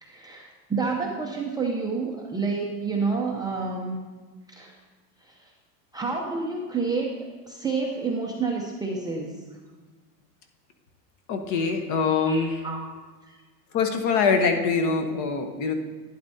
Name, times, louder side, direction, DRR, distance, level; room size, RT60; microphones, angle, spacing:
voice 1, 0.0-4.0 4.5-4.7 5.2-5.5 5.9-9.3 12.3-12.8 13.3-13.4, right 4 dB, 10° right, -2 dB, 0.5 m, -29 dB
voice 2, 11.3-12.5 13.7-15.7, left 5 dB, 40° left, 5 dB, 1.0 m, -23 dB
11.5 x 10.0 x 2.7 m, 1.3 s
supercardioid pair, 140°, 48 cm